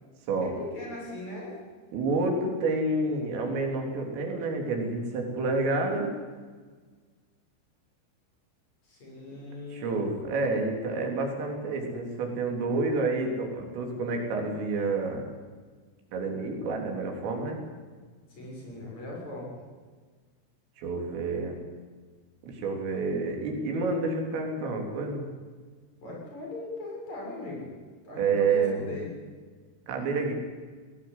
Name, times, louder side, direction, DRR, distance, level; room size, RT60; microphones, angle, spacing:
voice 1, 0.3-1.6 8.8-10.1 18.3-19.6 26.0-27.7 28.0-29.1, left 2 dB, 35° left, -2 dB, 7.8 m, -39 dB
voice 2, 1.9-6.1 9.7-15.2 16.1-17.6 20.8-21.6 22.4-25.3 28.2-28.8 29.9-30.3, right 3 dB, 80° right, 2 dB, 6.1 m, -29 dB
20.0 x 18.5 x 9.8 m, 1.5 s
omnidirectional pair, 5.8 m